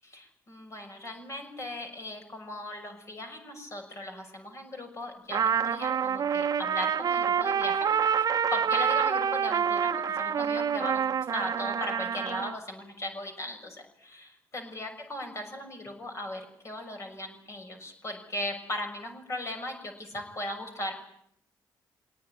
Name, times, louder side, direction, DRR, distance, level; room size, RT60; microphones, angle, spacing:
voice 1, 0.0-7.9 8.1-20.9, left 1 dB, 40° left, 4 dB, 6.6 m, -38 dB
Trumpet, 5.3-12.5, right 7 dB, 55° right, 1.1 m, -27 dB
23.5 x 18.0 x 10.0 m, 0.72 s
cardioid pair, 80°, 8 cm